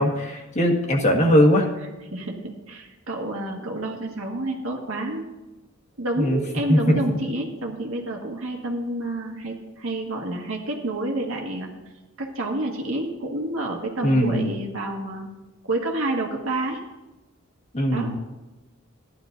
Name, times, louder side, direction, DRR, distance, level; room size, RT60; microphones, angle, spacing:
voice 1, 0.0-1.7 6.2-6.4 6.7-7.0 14.0-14.5 17.7-18.2, equal, 35° left, 1 dB, 1.5 m, -20 dB
voice 2, 2.1-5.2 6.0-11.7 12.2-15.3 15.7-16.8 17.9-18.1, right 2 dB, 80° right, 0 dB, 1.7 m, -29 dB
14.5 x 11.0 x 2.6 m, 1.1 s
head